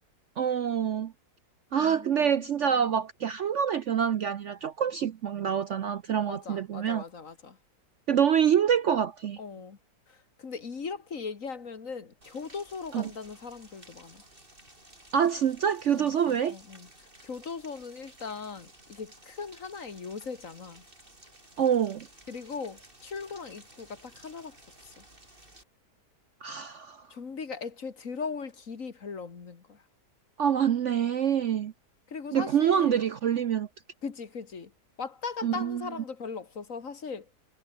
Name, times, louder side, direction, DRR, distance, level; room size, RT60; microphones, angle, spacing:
voice 1, 0.4-1.1 1.7-7.0 8.1-9.4 12.9-13.1 15.1-16.6 21.6-22.1 26.4-27.0 30.4-31.7 32.3-33.7 35.4-35.8, right 8 dB, 55° right, 0.9 m, -26 dB
voice 2, 1.8-2.9 6.3-7.6 9.4-9.8 10.1-14.2 15.9-16.9 17.2-20.8 22.3-25.0 27.1-29.8 32.1-33.0 34.0-34.7 35.0-37.3, left 5 dB, 50° left, 2.2 m, -39 dB
Rain, 12.2-25.6, right 1 dB, 30° right, 6.8 m, -55 dB
omnidirectional pair, 1.8 m